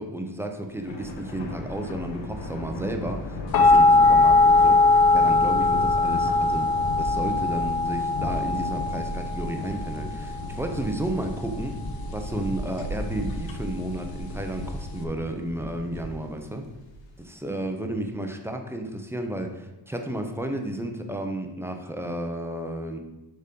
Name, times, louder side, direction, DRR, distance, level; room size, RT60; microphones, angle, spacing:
voice 1, 0.0-6.7 7.0-11.8 12.1-16.7 17.2-23.0, right 1 dB, 5° right, 4 dB, 0.5 m, -32 dB
Thunder, 0.7-17.3, left 1 dB, 65° left, 1.4 m, -36 dB
sound 1, 3.5-15.0, left 2 dB, 50° left, 0.8 m, -21 dB
6.7 x 5.0 x 5.2 m, 1.0 s
wide cardioid pair, 180°, 47 cm